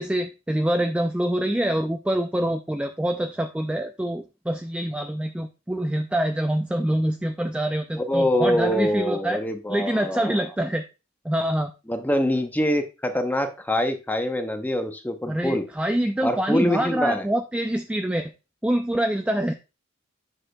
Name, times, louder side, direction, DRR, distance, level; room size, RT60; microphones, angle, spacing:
voice 1, 0.0-9.4 9.7-10.8 11.2-11.7 15.3-18.3 18.6-19.5, right 1 dB, 5° right, 5 dB, 0.3 m, -25 dB
voice 2, 8.0-10.4 11.9-15.6 16.2-17.3, left 1 dB, 10° left, 6 dB, 0.8 m, -24 dB
7.6 x 6.2 x 2.2 m, 0.29 s
head